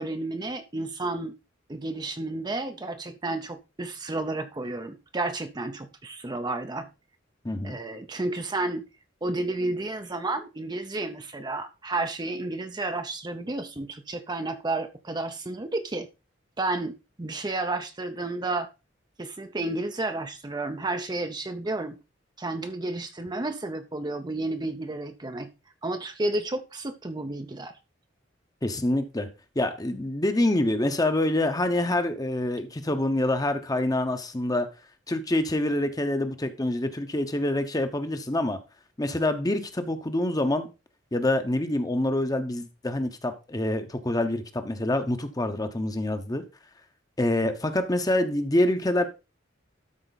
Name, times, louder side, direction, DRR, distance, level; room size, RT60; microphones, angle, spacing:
voice 1, 0.0-1.4 1.7-6.9 7.6-8.8 9.2-16.1 16.6-18.7 19.2-22.0 22.4-25.5 25.8-27.8, right 2 dB, 20° right, 0.7 m, -31 dB
voice 2, 7.4-7.8 28.6-29.3 29.6-34.7 35.1-38.6 39.0-40.7 41.1-46.4 47.2-49.1, left 1 dB, 20° left, 0.9 m, -26 dB
12.5 x 4.4 x 4.0 m
head